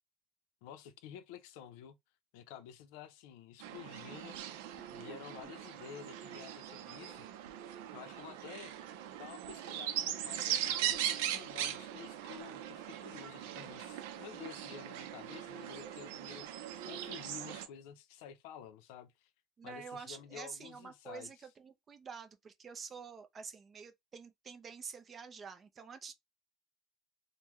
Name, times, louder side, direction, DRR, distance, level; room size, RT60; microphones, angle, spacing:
voice 1, 0.6-2.0 2.3-4.6 4.9-7.3 7.9-8.9 9.2-16.5 16.8-19.3 19.6-21.3, left 9 dB, 80° left, 0.5 m, -51 dB
sound 1, 3.6-17.7, right 11 dB, 90° right, 0.5 m, -40 dB
voice 2, 4.8-5.6 19.6-26.1, right 5 dB, 25° right, 0.5 m, -48 dB
3.6 x 2.1 x 3.0 m
cardioid pair, 145°, 0 cm